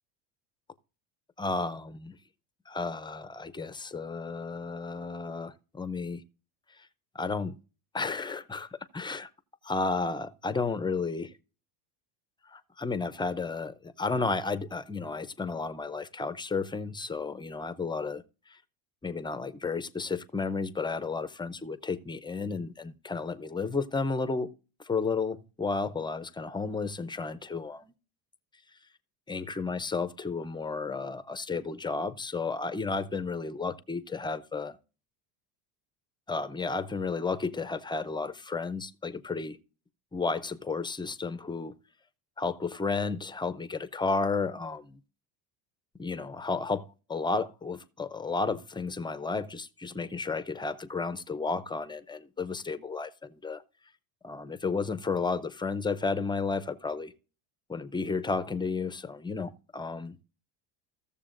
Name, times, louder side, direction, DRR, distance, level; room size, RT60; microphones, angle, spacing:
voice 1, 1.4-2.1 2.7-5.5 5.8-6.2 7.2-7.5 7.9-8.7 8.9-9.3 9.7-11.3 12.8-18.2 19.0-24.5 24.9-27.8 29.3-34.8 36.3-39.6 40.1-41.7 42.4-45.0 46.0-46.8 47.1-53.1 53.4-53.6 54.2-57.1 57.7-60.1, left 4 dB, 10° left, 0.4 m, -32 dB
15.5 x 7.0 x 2.5 m
cardioid pair, 125°, 48 cm